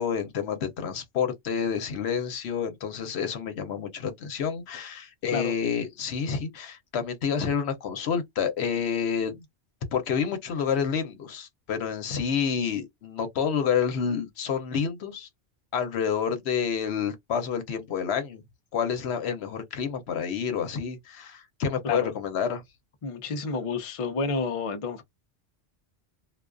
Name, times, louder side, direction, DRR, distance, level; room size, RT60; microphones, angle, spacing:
voice 1, 0.0-9.4 9.9-15.3 15.7-18.4 18.7-22.6, left 7 dB, 75° left, 0.9 m, -29 dB
voice 2, 23.0-25.0, left 4 dB, 45° left, 0.4 m, -30 dB
2.3 x 2.3 x 2.4 m
omnidirectional pair, 1.1 m